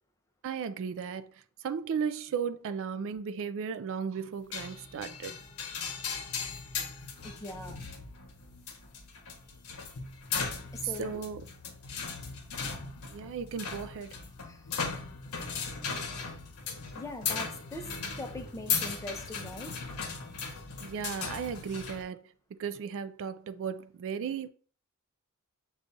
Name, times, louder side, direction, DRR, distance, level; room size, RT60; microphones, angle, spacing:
voice 1, 0.4-1.3 1.6-5.4 10.8-11.5 13.1-14.1 20.8-22.3 22.6-24.5, right 6 dB, 60° right, 0.3 m, -35 dB
sound 1, 4.5-22.0, left 5 dB, 75° left, 0.8 m, -37 dB
voice 2, 7.2-7.9 10.7-11.2 14.4-14.6 17.0-17.9 18.2-19.8, left 2 dB, 15° left, 0.5 m, -41 dB
6.7 x 2.4 x 2.5 m
head